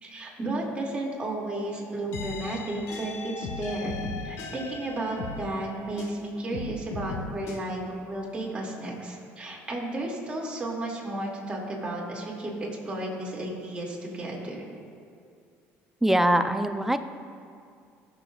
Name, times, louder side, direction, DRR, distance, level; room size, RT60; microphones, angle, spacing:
voice 1, 0.0-4.0 4.2-12.5 12.8-14.6, right 1 dB, 20° right, -3 dB, 2.5 m, -33 dB
sound 1, 2.1-6.2 6.5-7.6, left 3 dB, 70° left, 1.3 m, -37 dB
voice 2, 16.0-17.0, right 1 dB, 5° right, 8 dB, 0.6 m, -22 dB
20.5 x 6.9 x 2.5 m, 2.4 s
cardioid pair, 100°, 5 cm